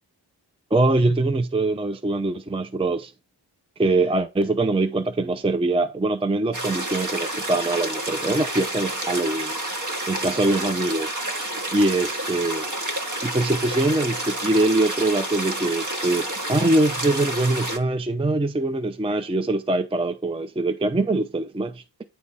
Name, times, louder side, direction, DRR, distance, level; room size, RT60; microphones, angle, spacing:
voice 1, 0.7-3.1 3.8-9.6 10.1-11.1 11.7-12.7 13.2-21.8, right 2 dB, 15° right, 0.5 m, -23 dB
sound 1, 6.5-17.8, right 1 dB, 45° right, 1.2 m, -29 dB
8.9 x 3.6 x 4.1 m
wide cardioid pair, 80°, 42 cm